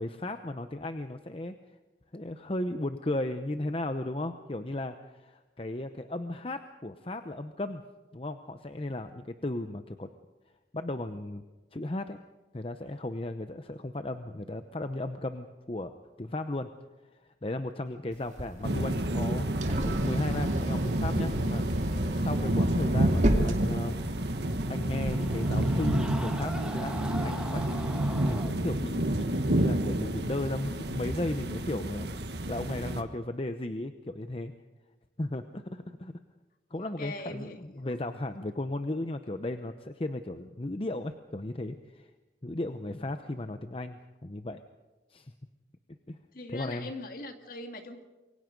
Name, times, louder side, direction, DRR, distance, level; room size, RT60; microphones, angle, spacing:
voice 1, 0.0-1.8 2.1-7.8 8.1-10.1 10.7-11.4 11.7-12.2 12.5-16.7 17.4-24.1 24.7-27.8 28.3-32.1 32.5-34.5 35.2-36.1 36.7-42.1 42.4-44.6 45.1-45.3 46.1-46.2 46.5-46.9, left 1 dB, 30° left, 8 dB, 0.8 m, -35 dB
sound 1, 18.1-24.4, right 1 dB, 40° right, 2.6 m, -33 dB
sound 2, 18.6-33.0, right 1 dB, 70° right, 1.5 m, -29 dB
Screaming, 24.2-28.5, right 1 dB, 5° right, 1.5 m, -41 dB
voice 2, 36.8-38.0 46.3-48.0, left 2 dB, 50° left, 5 dB, 2.2 m, -41 dB
28.0 x 23.0 x 5.3 m, 1.1 s
head